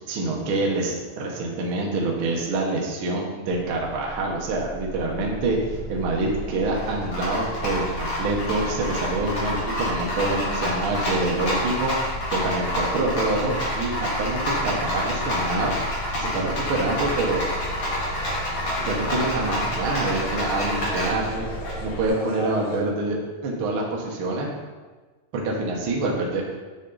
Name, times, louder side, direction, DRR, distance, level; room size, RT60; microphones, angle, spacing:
voice 1, 0.1-5.6 5.9-11.9 12.3-15.7 16.1-17.4 18.8-21.5 21.8-24.5 25.3-26.4, right 2 dB, 70° right, -2 dB, 1.2 m, -26 dB
Rattle, 3.5-22.1, equal, 40° left, 1.9 m, -28 dB
sound 1, 17.5-22.8, left 1 dB, 65° left, 1.3 m, -38 dB
6.7 x 6.6 x 3.9 m, 1.3 s
omnidirectional pair, 4.1 m